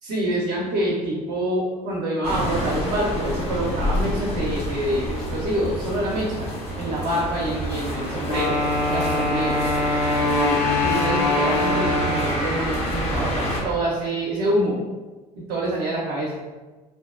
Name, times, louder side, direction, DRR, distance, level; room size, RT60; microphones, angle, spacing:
voice 1, 0.0-9.6 10.8-14.8 15.4-16.4, right 1 dB, 50° right, -5 dB, 0.6 m, -26 dB
sound 1, 2.2-13.6, left 1 dB, 30° left, 0.7 m, -28 dB
Wind instrument woodwind instrument, 8.2-12.6, left 2 dB, 85° left, 0.4 m, -23 dB
2.6 x 2.0 x 2.3 m, 1.2 s
figure-of-eight pair, 60°, 20 cm